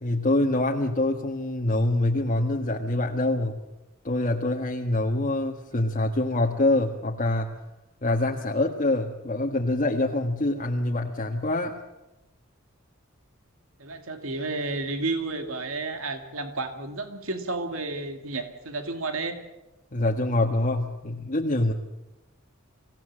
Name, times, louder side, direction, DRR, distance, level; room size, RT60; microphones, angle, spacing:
voice 1, 0.0-3.6 4.0-7.5 8.0-11.8 19.9-21.7, left 2 dB, 40° left, 0 dB, 1.5 m, -25 dB
voice 2, 13.8-19.4, right 3 dB, 80° right, 6 dB, 2.2 m, -31 dB
26.0 x 17.0 x 7.6 m, 0.99 s
head